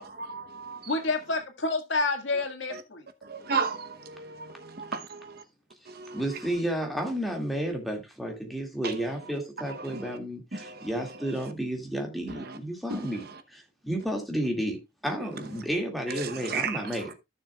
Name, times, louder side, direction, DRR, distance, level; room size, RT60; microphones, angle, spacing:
voice 1, 0.2-0.8 3.3-5.2 6.0-6.2 8.8-9.0 10.6-10.7 12.9-13.0 16.2-16.8, right 5 dB, 55° right, 1.0 m, -33 dB
voice 2, 0.9-3.0, left 3 dB, 80° left, 1.8 m, -28 dB
voice 3, 6.1-14.8 15.0-17.1, right 1 dB, ahead, 2.2 m, -32 dB
14.5 x 6.5 x 2.3 m
head